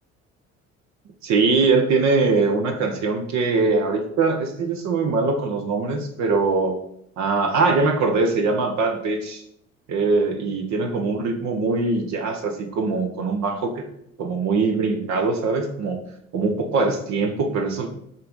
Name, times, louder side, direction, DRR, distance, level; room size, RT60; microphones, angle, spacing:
voice 1, 1.2-6.8 7.2-9.4 9.9-13.9 14.2-16.0 16.3-17.9, right 3 dB, 45° right, 4 dB, 0.9 m, -22 dB
5.8 x 3.4 x 5.3 m, 0.73 s
figure-of-eight pair, 55°, 40 cm